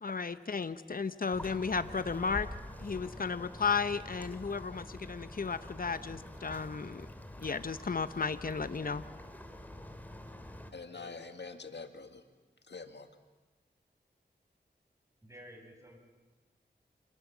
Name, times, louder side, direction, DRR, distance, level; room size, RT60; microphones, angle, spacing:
voice 1, 0.0-2.5 2.8-7.1 7.4-9.0, left 5 dB, 55° left, 12 dB, 0.9 m, -34 dB
sound 1, 1.3-10.7, left 1 dB, 10° left, 2.8 m, -46 dB
voice 2, 10.7-12.2 12.6-13.1, left 4 dB, 80° left, 7 dB, 2.0 m, -45 dB
voice 3, 15.2-16.0, equal, 15° right, 2 dB, 6.4 m, -52 dB
28.5 x 26.0 x 7.3 m, 1.2 s
wide cardioid pair, 60°, 18 cm